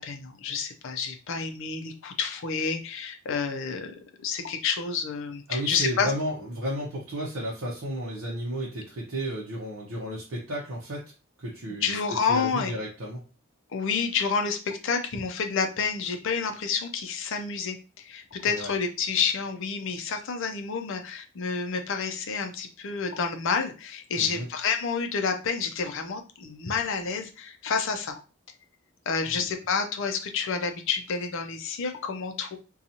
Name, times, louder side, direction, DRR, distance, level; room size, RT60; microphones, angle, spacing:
voice 1, 0.0-3.9 4.2-6.1 11.8-12.7 13.7-28.1 29.1-32.6, left 5 dB, 65° left, 6 dB, 0.5 m, -29 dB
voice 2, 5.5-11.1 11.4-13.2 18.5-18.7 24.2-24.5 29.3-29.5, equal, 65° right, -4 dB, 0.7 m, -33 dB
2.8 x 2.3 x 2.6 m, 0.33 s
head